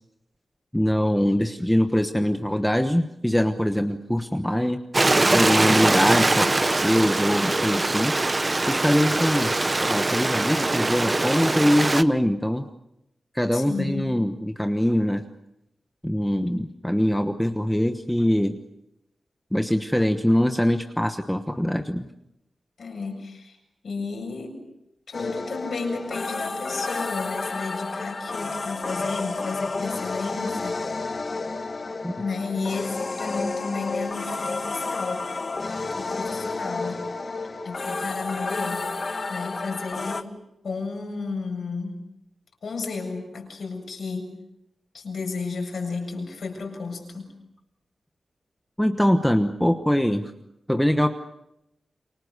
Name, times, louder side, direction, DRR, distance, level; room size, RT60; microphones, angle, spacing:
voice 1, 0.7-4.8 5.3-8.2 8.7-9.5 9.8-12.7 13.3-15.2 16.0-18.6 19.5-22.1 32.0-32.1 48.8-50.3 50.7-51.1, equal, 5° left, 6 dB, 1.2 m, -23 dB
Stream, 4.9-12.0, right 2 dB, 25° right, 0.9 m, -22 dB
voice 2, 13.5-14.1 22.8-23.6 23.8-24.6 25.1-30.8 32.1-35.3 36.0-37.0 37.6-38.9 39.3-40.3 40.6-42.0 42.6-44.3 44.9-47.3, left 4 dB, 65° left, 3 dB, 7.5 m, -32 dB
sound 1, 25.1-40.2, left 3 dB, 40° left, 1.3 m, -31 dB
29.0 x 25.0 x 6.7 m, 0.86 s
wide cardioid pair, 135°, 0 cm